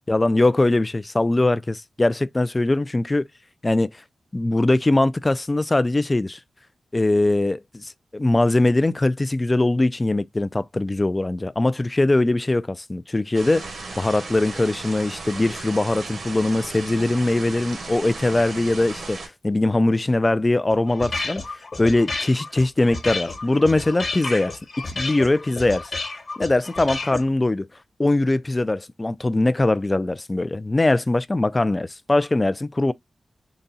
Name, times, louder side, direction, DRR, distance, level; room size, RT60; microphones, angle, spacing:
voice 1, 0.0-3.3 3.6-3.9 4.3-6.4 6.9-13.6 14.0-19.2 19.4-21.4 21.8-24.6 24.9-25.9 26.4-27.7 28.0-32.9, left 2 dB, 25° left, 0.4 m, -21 dB
sound 1, 13.3-19.3, right 3 dB, 65° right, 1.1 m, -36 dB
sound 2, 20.7-27.2, left 3 dB, 45° left, 1.1 m, -31 dB
4.0 x 2.3 x 3.9 m
wide cardioid pair, 105°, 0 cm